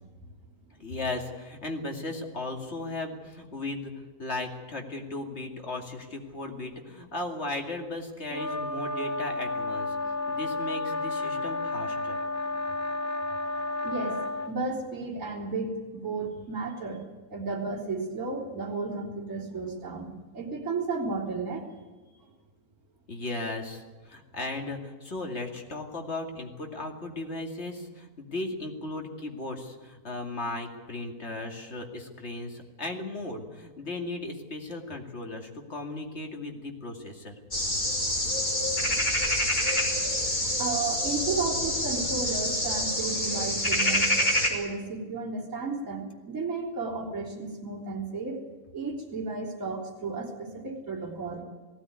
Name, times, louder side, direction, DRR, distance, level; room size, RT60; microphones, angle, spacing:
voice 1, 0.8-3.9 4.2-10.0 10.3-12.2 23.1-37.3, left 2 dB, 45° left, 2 dB, 2.8 m, -36 dB
sound 1, 8.3-14.5, left 2 dB, 65° left, 1.8 m, -31 dB
voice 2, 13.8-14.2 14.5-17.0 17.3-20.1 20.3-21.7 40.6-44.1 44.5-48.4 48.7-51.4, right 4 dB, 55° right, -5 dB, 4.0 m, -33 dB
sound 2, 37.5-44.5, left 1 dB, 30° left, 4.2 m, -27 dB
19.0 x 16.0 x 9.6 m, 1.3 s
omnidirectional pair, 1.6 m